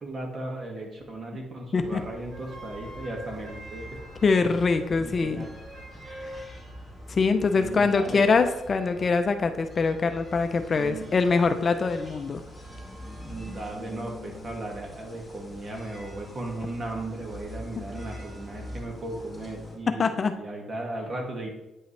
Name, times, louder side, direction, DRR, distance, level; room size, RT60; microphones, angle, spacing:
voice 1, 0.0-4.0 5.0-5.5 6.0-6.2 7.5-8.4 10.8-11.1 13.2-21.5, right 2 dB, 35° right, 1 dB, 1.9 m, -36 dB
sound 1, 1.7-19.8, equal, 5° left, 2.4 m, -44 dB
Wind instrument woodwind instrument, 2.3-6.5, right 1 dB, 85° right, 2.7 m, -44 dB
voice 2, 4.2-5.5 6.2-6.5 7.1-12.4 20.0-20.3, left 4 dB, 40° left, 8 dB, 0.5 m, -24 dB
9.1 x 5.4 x 3.3 m, 0.95 s
cardioid pair, 90°, 0 cm